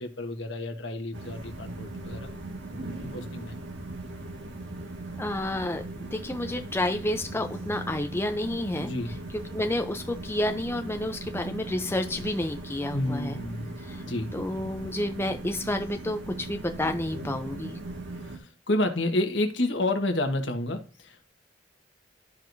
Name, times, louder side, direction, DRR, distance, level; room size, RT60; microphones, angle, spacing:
voice 1, 0.0-2.3 3.0-3.6 8.8-9.2 12.9-13.7 14.0-14.3 18.3-21.2, left 1 dB, 70° left, 5 dB, 1.4 m, -30 dB
sound 1, 1.1-18.4, right 2 dB, 75° right, 1.8 m, -39 dB
voice 2, 5.2-9.2 9.5-13.4 13.8-14.0 14.3-17.8, left 1 dB, 15° left, 6 dB, 0.6 m, -30 dB
12.5 x 4.8 x 2.7 m, 0.35 s
head